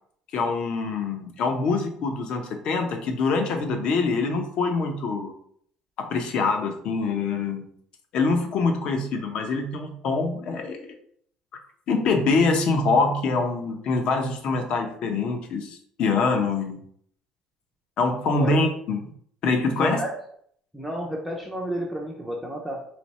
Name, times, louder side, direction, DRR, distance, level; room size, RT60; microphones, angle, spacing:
voice 1, 0.3-5.3 6.0-7.6 8.1-10.9 11.9-16.8 18.0-19.0 19.4-20.0, left 3 dB, 50° left, 4 dB, 0.7 m, -24 dB
voice 2, 19.8-20.2 20.7-22.9, right 1 dB, ahead, -2 dB, 0.5 m, -31 dB
3.3 x 3.1 x 4.1 m, 0.64 s
cardioid pair, 165°, 2 cm